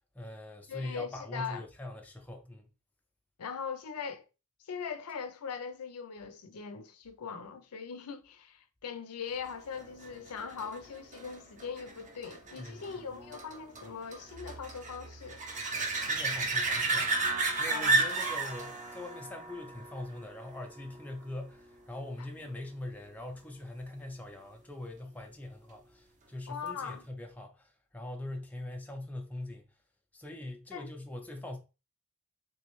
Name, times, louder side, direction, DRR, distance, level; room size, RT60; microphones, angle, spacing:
voice 1, 0.1-2.6 12.6-12.9 16.0-17.3 17.6-29.7 30.1-31.6, left 1 dB, 5° left, 0.5 m, -42 dB
voice 2, 0.7-1.6 3.4-4.2 4.6-15.4 17.7-18.0 22.4-22.5 26.5-27.1 30.7-30.9, left 6 dB, 80° left, 0.5 m, -40 dB
sound 1, 9.7-21.0 26.7-26.8, right 3 dB, 35° right, 0.7 m, -33 dB
3.5 x 3.1 x 3.0 m
head